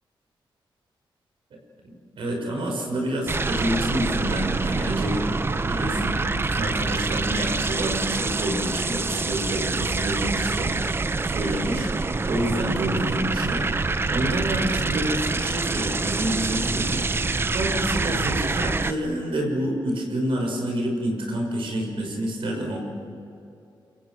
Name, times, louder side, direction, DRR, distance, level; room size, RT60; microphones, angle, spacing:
voice 1, 1.8-5.2 5.5-13.7 14.1-22.8, right 1 dB, 75° right, 1 dB, 6.1 m, -28 dB
sound 1, 3.3-18.9, right 3 dB, 25° right, 0.8 m, -26 dB
28.5 x 24.5 x 6.3 m, 2.7 s
wide cardioid pair, 115°, 9 cm